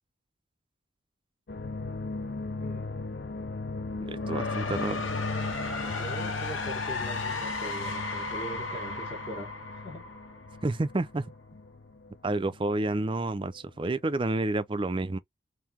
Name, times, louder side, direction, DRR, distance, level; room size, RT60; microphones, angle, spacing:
sound 1, 1.5-13.6 13.9-14.3, left 3 dB, 50° left, 0.5 m, -38 dB
sound 2, 4.0-10.9, left 3 dB, 75° left, 1.4 m, -35 dB
voice 1, 4.1-5.1 10.6-11.3 12.2-15.2, right 2 dB, 25° right, 0.4 m, -29 dB
voice 2, 5.8-10.1, right 1 dB, 30° left, 1.7 m, -41 dB
3.8 x 2.8 x 4.4 m
head